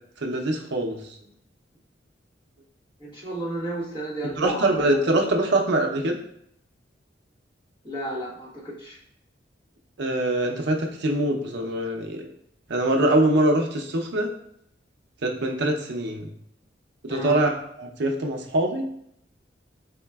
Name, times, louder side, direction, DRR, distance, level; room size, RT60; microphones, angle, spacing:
voice 1, 0.2-1.0 4.2-6.2 10.0-12.2 12.7-14.3 15.2-16.3 17.0-18.9, right 1 dB, 65° right, 2 dB, 0.6 m, -23 dB
voice 2, 3.0-5.0 7.8-9.0 17.1-17.4, right 1 dB, 30° left, -6 dB, 1.3 m, -32 dB
3.9 x 3.6 x 2.3 m, 0.71 s
head